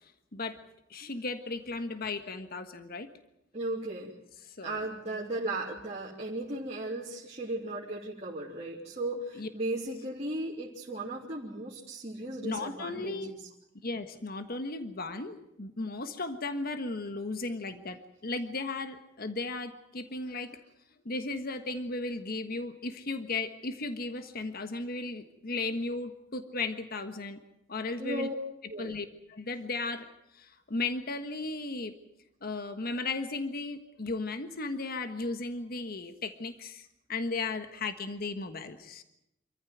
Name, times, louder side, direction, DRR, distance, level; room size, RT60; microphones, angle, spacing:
voice 1, 0.9-3.1 4.6-4.8 9.4-9.5 12.4-13.3 13.8-20.5 21.0-27.4 27.7-28.3 28.8-30.1 30.4-31.9 32.4-39.0, left 3 dB, 50° left, 9 dB, 1.4 m, -35 dB
voice 2, 3.5-4.1 4.6-13.4 28.0-28.3 28.7-29.0, right 1 dB, 35° right, -5 dB, 3.2 m, -36 dB
26.5 x 14.5 x 9.3 m, 0.81 s
head